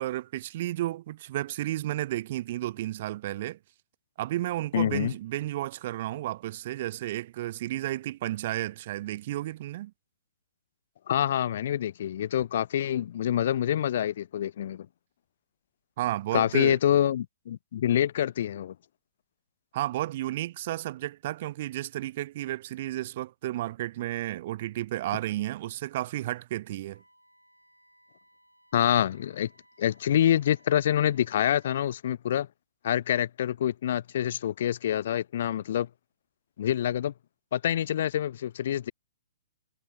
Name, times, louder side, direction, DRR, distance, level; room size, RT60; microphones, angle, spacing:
voice 1, 0.0-3.6 4.2-9.9 16.0-16.8 19.7-27.0, right 15 dB, 40° right, 0.7 m, -32 dB
voice 2, 4.7-5.1 11.1-14.9 16.3-18.7 28.7-29.5 29.8-32.5 32.8-35.9 36.6-37.1 37.5-38.9, left 10 dB, 50° left, 0.7 m, -26 dB
Wind instrument woodwind instrument, 26.9-31.9, equal, 90° right, 7.5 m, -62 dB
figure-of-eight pair, 120°, 0 cm